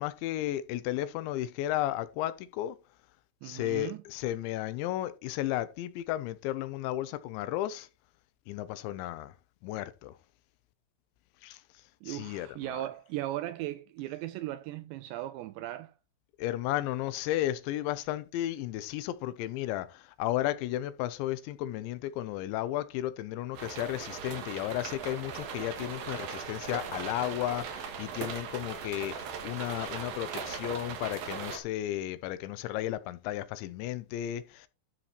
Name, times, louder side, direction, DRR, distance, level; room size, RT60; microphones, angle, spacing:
voice 1, 0.0-2.8 3.4-7.9 8.5-9.3 9.6-10.2 11.4-11.6 12.1-12.8 16.4-34.7, left 14 dB, 80° left, 2.9 m, -34 dB
voice 2, 3.4-4.0 12.0-15.9, right 14 dB, 85° right, 2.5 m, -37 dB
sound 1, 23.5-31.6, right 6 dB, 65° right, 2.6 m, -39 dB
13.0 x 4.4 x 4.4 m
omnidirectional pair, 5.6 m